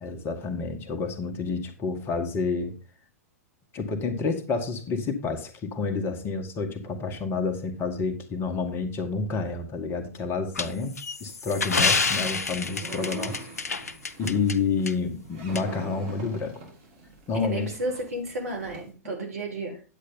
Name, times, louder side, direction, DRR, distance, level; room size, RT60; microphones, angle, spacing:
voice 1, 0.0-2.7 3.7-10.9 11.2-13.5 14.2-16.5 17.3-17.7, left 4 dB, 30° left, 1.7 m, -29 dB
sound 1, 10.6-14.6 14.9-15.0 15.6-15.7, left 4 dB, 75° left, 0.8 m, -27 dB
sound 2, 11.5-18.9, right 3 dB, 45° right, 4.0 m, -44 dB
voice 2, 17.4-19.8, right 1 dB, 65° right, 4.0 m, -32 dB
9.9 x 8.4 x 3.9 m
figure-of-eight pair, 100°, 8 cm